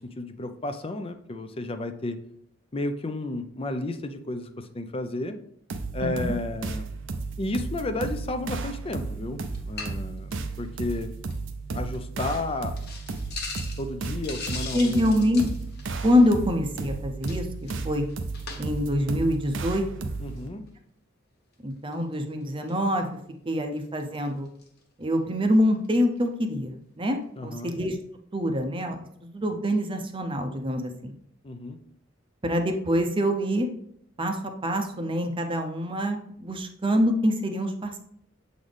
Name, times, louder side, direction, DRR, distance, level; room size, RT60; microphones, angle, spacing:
voice 1, 0.0-2.2 2.7-5.4 5.9-6.9 7.4-10.3 10.6-11.1 11.7-12.7 13.8-15.1 20.2-20.6 27.4-27.7 31.4-31.8, left 2 dB, 30° left, 8 dB, 0.5 m, -32 dB
sound 1, 5.7-20.5, right 3 dB, 65° right, 0.6 m, -34 dB
voice 2, 6.0-6.4 14.7-15.4 16.0-17.5 17.8-18.1 18.6-20.1 21.6-23.2 23.5-24.5 25.0-28.0 28.3-31.1 32.4-33.7 34.2-38.0, equal, 25° right, 5 dB, 0.7 m, -25 dB
sound 2, 9.4-10.0 10.3-10.6 10.9-11.0 11.3-11.4 11.9-12.0 12.3-12.4 12.8-16.4 17.2-18.9 19.3-19.5 20.2-20.5 21.9-22.1 22.7-22.8 23.5-23.6 23.8-24.8 25.5-25.6 25.8-26.0, left 4 dB, 55° left, 1.1 m, -40 dB
7.2 x 4.0 x 3.3 m, 0.70 s
head